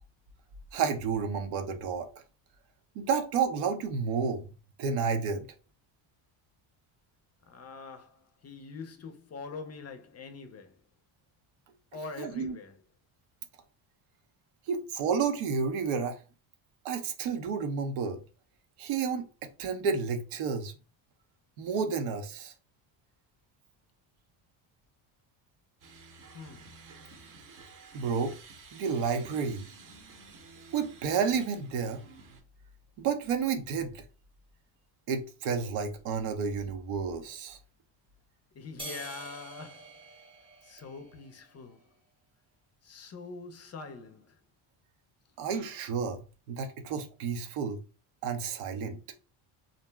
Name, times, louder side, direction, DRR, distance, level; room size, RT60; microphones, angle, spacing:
voice 1, 0.7-2.1 2.9-4.4 4.8-5.5 12.2-12.6 14.7-16.2 16.8-18.2 18.8-20.7 21.6-22.5 27.9-28.4 28.7-29.7 30.7-32.0 33.0-34.0 35.1-37.6 45.4-47.8 48.2-49.0, right 6 dB, 90° right, 0.7 m, -31 dB
voice 2, 7.5-10.8 11.9-12.7 26.3-26.7 38.5-40.0 40.6-41.9 42.8-44.4, left 4 dB, 35° left, 0.4 m, -44 dB
sound 1, 25.8-32.4, right 4 dB, 40° right, 0.7 m, -52 dB
sound 2, 38.8-41.4, right 2 dB, 10° right, 0.7 m, -46 dB
2.5 x 2.0 x 3.2 m
cardioid pair, 105°, 49 cm